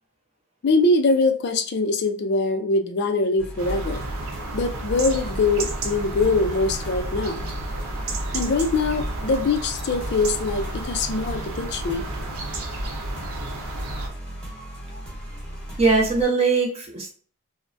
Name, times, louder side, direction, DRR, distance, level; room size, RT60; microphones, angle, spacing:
voice 1, 0.6-4.0 4.5-7.5 8.3-12.1, left 3 dB, 50° left, 7 dB, 0.4 m, -23 dB
sound 1, 3.4-16.2, right 1 dB, 5° left, 1.0 m, -37 dB
sound 2, 3.6-14.1, right 1 dB, 80° right, 0.7 m, -32 dB
voice 2, 15.8-17.1, right 4 dB, 30° right, -1 dB, 0.7 m, -20 dB
3.3 x 2.1 x 2.5 m, 0.42 s
head